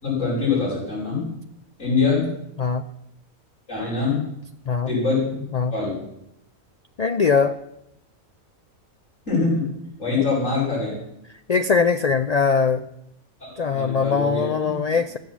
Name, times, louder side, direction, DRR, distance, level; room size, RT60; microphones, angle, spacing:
voice 1, 0.0-1.3 1.8-2.3 3.7-4.2 4.9-6.0 9.3-9.6 10.0-11.0 13.4-14.7, left 4 dB, 65° left, -9 dB, 5.5 m, -24 dB
voice 2, 7.0-7.6 11.5-12.8 13.6-15.2, left 5 dB, 90° left, 9 dB, 0.3 m, -21 dB
14.0 x 7.5 x 7.3 m, 0.81 s
omnidirectional pair, 1.4 m